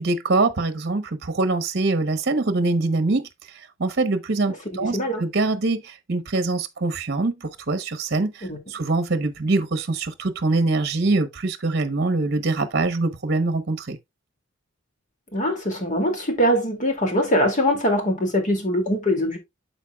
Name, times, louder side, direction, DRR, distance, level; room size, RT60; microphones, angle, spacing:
voice 1, 0.0-3.3 3.8-14.0, right 3 dB, 55° right, 0.9 m, -24 dB
voice 2, 15.3-19.4, equal, 40° left, 2.3 m, -22 dB
12.5 x 4.4 x 2.3 m
head